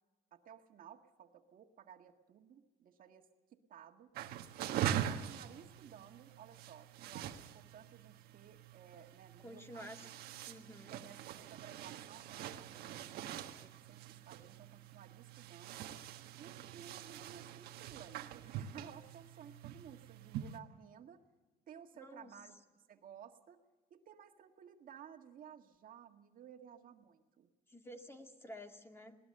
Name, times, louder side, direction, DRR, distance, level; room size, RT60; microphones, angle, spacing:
voice 1, 0.3-4.1 4.8-9.9 10.9-15.8 16.4-21.2 21.7-22.6 22.9-23.6 23.9-27.5, right 8 dB, 65° right, 5 dB, 1.8 m, -56 dB
sound 1, 4.1-20.6, right 10 dB, 90° right, 1.4 m, -44 dB
voice 2, 9.4-10.1 10.5-11.0 21.9-22.3 27.7-29.2, equal, 15° left, 4 dB, 2.1 m, -51 dB
20.5 x 19.0 x 6.7 m, 1.2 s
cardioid pair, 95°, 16 cm